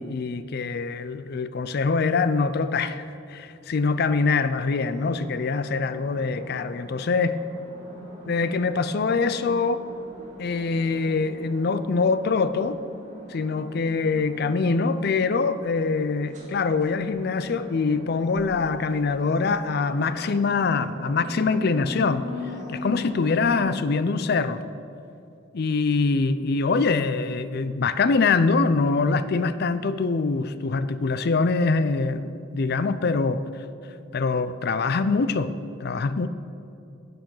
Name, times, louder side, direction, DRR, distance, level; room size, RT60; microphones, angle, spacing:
voice 1, 0.0-7.4 8.3-9.8 10.4-12.8 13.3-22.2 22.7-24.6 25.5-33.4 34.1-35.5 35.8-36.3, left 4 dB, 55° left, 0.5 m, -24 dB
sound 1, 4.5-23.6, equal, 40° right, 2.0 m, -41 dB
10.0 x 7.9 x 6.1 m
head